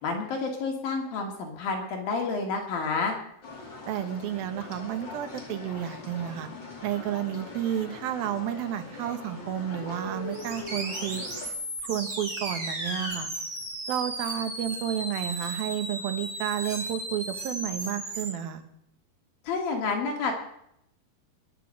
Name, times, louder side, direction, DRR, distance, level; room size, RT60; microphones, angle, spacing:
voice 1, 0.0-3.2 19.5-20.3, left 4 dB, 70° left, 2 dB, 3.9 m, -29 dB
sound 1, 3.4-11.5, left 2 dB, 30° left, 2.9 m, -41 dB
voice 2, 3.9-6.5 6.8-11.2 11.8-13.3 13.9-18.6, right 10 dB, 75° right, 8 dB, 3.1 m, -31 dB
sound 2, 10.3-18.3, right 1 dB, 20° right, 4.3 m, -35 dB
21.5 x 7.3 x 7.7 m, 0.75 s
omnidirectional pair, 4.3 m